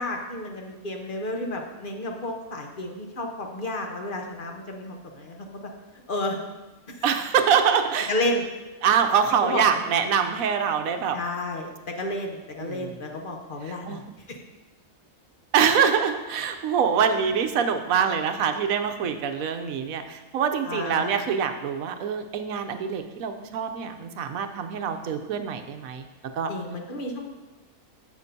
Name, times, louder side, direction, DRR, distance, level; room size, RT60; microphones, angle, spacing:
voice 1, 0.0-5.5 6.1-6.4 6.9-7.2 8.1-8.4 9.4-9.6 11.1-14.0 14.3-14.4 20.6-21.1 26.5-27.3, left 1 dB, 45° left, 2 dB, 0.8 m, -31 dB
voice 2, 7.0-8.1 8.8-11.2 12.6-13.0 13.3-14.0 15.5-26.1 26.3-26.5, right 7 dB, 75° right, 7 dB, 1.1 m, -24 dB
9.6 x 7.2 x 2.7 m, 1.2 s
omnidirectional pair, 1.5 m